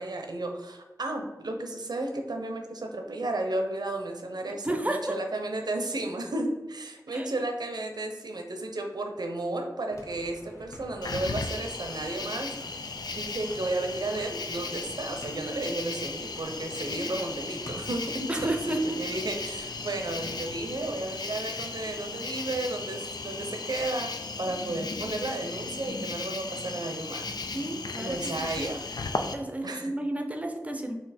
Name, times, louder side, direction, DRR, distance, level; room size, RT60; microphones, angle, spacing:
voice 1, 0.0-12.5 13.1-18.3 18.7-24.1 24.4-27.2 28.0-28.8 29.6-29.9, right 2 dB, 80° right, 3 dB, 0.7 m, -33 dB
voice 2, 4.6-5.1 7.1-7.3 18.3-19.0 27.5-28.7 29.3-30.9, right 1 dB, 20° right, 4 dB, 0.6 m, -31 dB
sound 1, 9.9-22.1, left 1 dB, 50° left, 1.0 m, -49 dB
Cricket, 11.0-29.3, left 4 dB, 85° left, 0.4 m, -36 dB
4.2 x 2.8 x 4.2 m, 1.2 s
wide cardioid pair, 60°, 7 cm